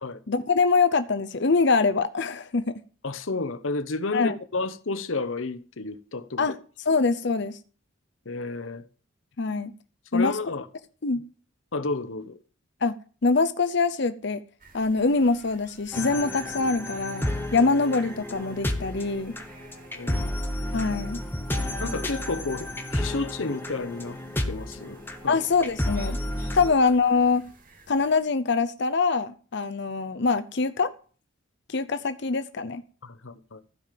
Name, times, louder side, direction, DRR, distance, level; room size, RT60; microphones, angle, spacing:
voice 1, 0.3-2.7 4.1-4.3 6.4-6.6 6.8-7.6 9.4-9.7 10.1-10.3 11.0-11.2 12.8-12.9 13.2-14.4 14.7-19.3 20.7-21.2 25.3-26.2 26.5-27.4 27.9-30.9 31.7-32.8, left 4 dB, 60° left, 0.7 m, -24 dB
voice 2, 3.0-6.5 8.2-8.8 10.1-10.7 11.7-12.4 19.9-20.3 21.8-24.2 24.5-25.4 26.6-26.7 33.0-33.6, left 3 dB, 80° left, 1.0 m, -31 dB
sound 1, 14.6-28.2, right 3 dB, 45° right, 2.3 m, -52 dB
sound 2, 15.9-26.7, left 1 dB, 10° left, 1.4 m, -31 dB
15.5 x 5.3 x 7.5 m
head